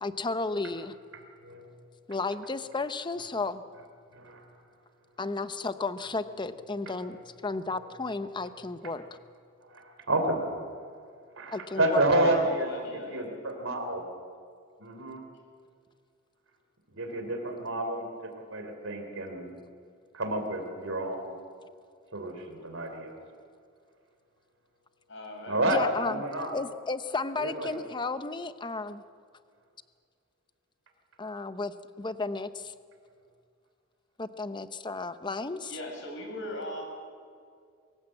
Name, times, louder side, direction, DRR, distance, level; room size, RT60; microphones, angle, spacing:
voice 1, 0.0-0.9 2.1-3.6 5.2-7.2 7.4-9.2 11.5-12.5 25.7-26.2 26.5-29.0 31.2-32.7 34.2-35.7, left 3 dB, 20° left, 11 dB, 0.7 m, -33 dB
voice 2, 9.7-10.4 11.4-12.7 13.1-14.0 14.8-15.2 16.9-18.1 18.5-19.5 20.1-21.3 22.1-23.1 25.5-25.8 26.0-26.5 27.4-27.7, right 1 dB, 75° right, 4 dB, 3.5 m, -29 dB
voice 3, 12.2-13.3 25.1-25.6 35.6-36.8, left 1 dB, 65° left, 1 dB, 6.2 m, -39 dB
24.0 x 15.0 x 7.7 m, 2.2 s
head